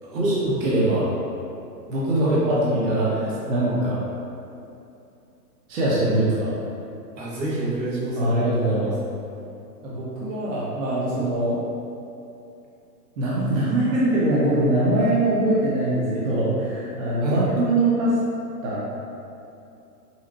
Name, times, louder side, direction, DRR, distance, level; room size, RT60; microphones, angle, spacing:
voice 1, 0.0-0.6 2.2-2.6 2.9-3.5 7.2-8.3 17.2-17.5, right 1 dB, 85° right, -6 dB, 1.5 m, -28 dB
voice 2, 0.6-1.1 1.9-4.0 5.7-6.5 8.2-8.9 9.8-11.6 13.2-18.2 18.6-18.8, right 1 dB, 50° right, -7 dB, 1.0 m, -22 dB
5.7 x 2.1 x 2.8 m, 2.7 s
hypercardioid pair, 150°, 50 cm